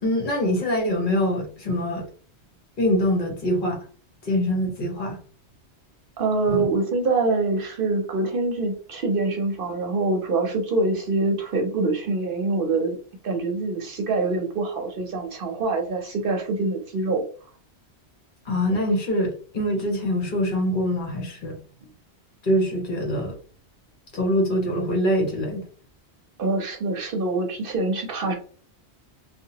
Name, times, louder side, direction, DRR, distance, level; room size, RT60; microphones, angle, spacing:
voice 1, 0.0-2.1 2.8-3.8 4.2-5.2 6.5-6.6 18.4-21.5 22.4-23.4 24.1-25.6, equal, 50° left, 0 dB, 1.1 m, -24 dB
voice 2, 6.2-13.0 13.2-17.2 26.4-28.3, right 3 dB, 60° right, 3 dB, 0.7 m, -25 dB
2.7 x 2.2 x 2.7 m, 0.42 s
omnidirectional pair, 1.1 m